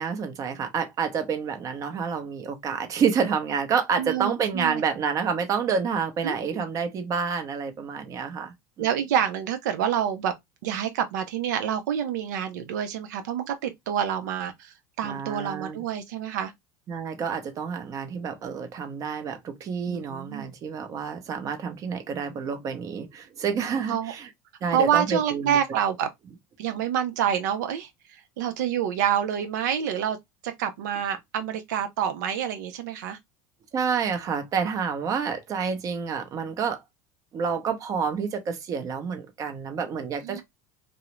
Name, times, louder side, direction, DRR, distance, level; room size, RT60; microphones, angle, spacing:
voice 1, 0.0-8.9 15.0-15.8 16.9-24.3 24.6-25.6 33.7-36.8 37.3-40.4, right 6 dB, 35° right, 0.7 m, -28 dB
voice 2, 3.9-4.8 6.2-6.6 8.8-10.3 10.6-16.5 19.9-20.5 23.9-24.1 24.7-26.1 26.6-30.2 30.4-33.2 40.2-40.4, right 9 dB, 90° right, 0.4 m, -27 dB
2.3 x 2.0 x 2.9 m
supercardioid pair, 120°, 9 cm